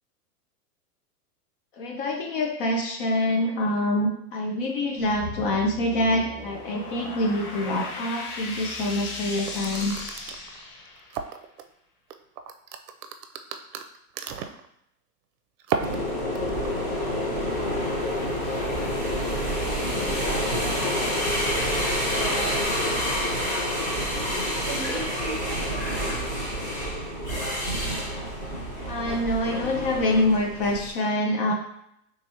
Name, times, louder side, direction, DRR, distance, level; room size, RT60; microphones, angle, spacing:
voice 1, 1.8-10.0 28.9-31.5, left 1 dB, 35° left, 2 dB, 0.5 m, -25 dB
sound 1, 5.0-11.3, left 3 dB, 70° left, 1.1 m, -37 dB
sound 2, 9.3-11.6 12.1-14.7 15.6-16.7, right 7 dB, 75° right, 0.6 m, -33 dB
sound 3, 15.8-30.9, equal, 15° left, 1.2 m, -28 dB
voice 2, 22.1-22.7 24.7-26.2, right 4 dB, 35° right, 3 dB, 0.8 m, -37 dB
3.3 x 3.2 x 2.8 m, 0.76 s
hypercardioid pair, 125°, 47 cm